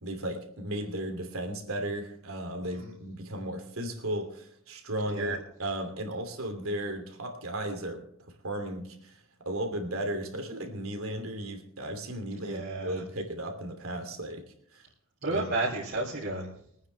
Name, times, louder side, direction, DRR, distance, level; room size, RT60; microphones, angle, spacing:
voice 1, 0.0-8.0 8.4-14.4 14.7-14.8 15.3-15.5, right 1 dB, 80° right, 5 dB, 2.8 m, -35 dB
voice 2, 2.6-2.9 5.1-5.4 12.4-13.0 15.2-16.5, right 2 dB, 55° right, -6 dB, 3.5 m, -32 dB
23.5 x 9.5 x 3.4 m, 0.69 s
head